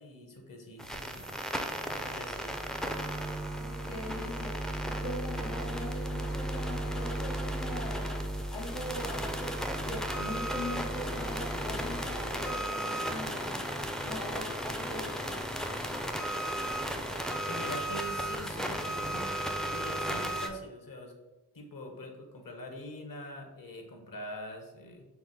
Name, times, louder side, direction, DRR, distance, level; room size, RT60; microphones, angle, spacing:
voice 1, 0.0-2.6 17.2-21.1 21.5-25.1, left 1 dB, 55° left, 3 dB, 0.9 m, -44 dB
sound 1, 0.8-20.5, right 1 dB, ahead, 0.3 m, -34 dB
voice 2, 3.5-9.6 9.8-13.6 14.0-15.4, left 2 dB, 85° left, -1 dB, 0.9 m, -41 dB
5.7 x 2.1 x 3.7 m, 1.1 s
cardioid pair, 55°, 40 cm